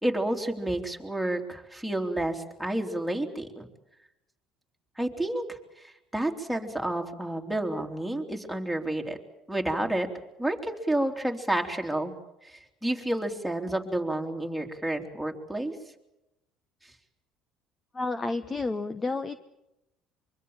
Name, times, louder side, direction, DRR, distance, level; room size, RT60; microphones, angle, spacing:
voice 1, 0.0-3.7 5.0-9.2 9.5-10.1 10.4-12.1 12.4-15.7, right 1 dB, ahead, 1 dB, 3.3 m, -30 dB
voice 2, 17.9-19.4, left 3 dB, 20° left, 11 dB, 1.1 m, -30 dB
24.0 x 24.0 x 7.4 m, 0.90 s
cardioid pair, 105°, 0 cm